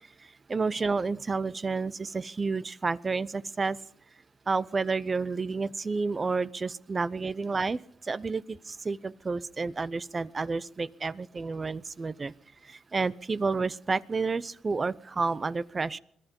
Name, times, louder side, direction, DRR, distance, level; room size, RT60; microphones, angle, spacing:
voice 1, 0.5-3.8 4.5-12.3 12.6-16.0, right 4 dB, 30° right, 18 dB, 0.6 m, -30 dB
21.5 x 12.0 x 5.3 m, 0.72 s
cardioid pair, 90°, 0 cm